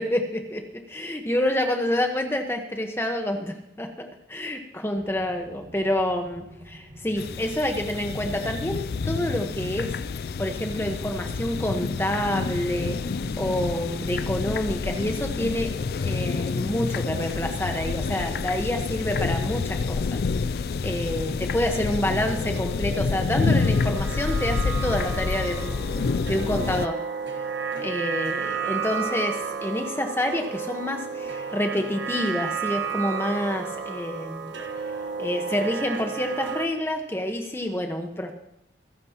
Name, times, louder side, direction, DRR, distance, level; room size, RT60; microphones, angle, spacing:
voice 1, 0.0-9.9 10.4-13.0 13.4-15.7 16.0-20.2 20.8-25.8 26.3-27.0 27.8-34.5 35.2-38.3, left 1 dB, 15° left, 4 dB, 1.2 m, -28 dB
sound 1, 4.9-15.2, equal, 45° right, 5.2 m, -44 dB
sound 2, 7.2-26.9, left 4 dB, 55° left, 0.3 m, -28 dB
sound 3, 22.2-36.7, right 6 dB, 80° right, 1.5 m, -32 dB
26.0 x 9.6 x 2.9 m, 0.83 s
head